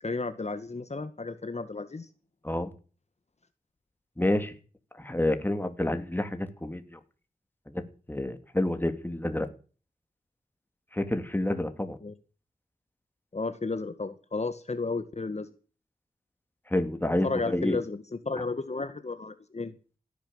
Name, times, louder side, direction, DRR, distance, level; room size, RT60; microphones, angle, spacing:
voice 1, 0.0-2.1 12.0-12.2 13.3-15.5 17.2-19.8, left 3 dB, 50° left, 1.8 m, -33 dB
voice 2, 4.2-4.5 5.0-7.0 7.7-7.8 8.1-9.5 10.9-12.0 16.7-17.8, left 1 dB, 15° left, 3.0 m, -28 dB
17.0 x 10.5 x 7.5 m
cardioid pair, 45°, 15 cm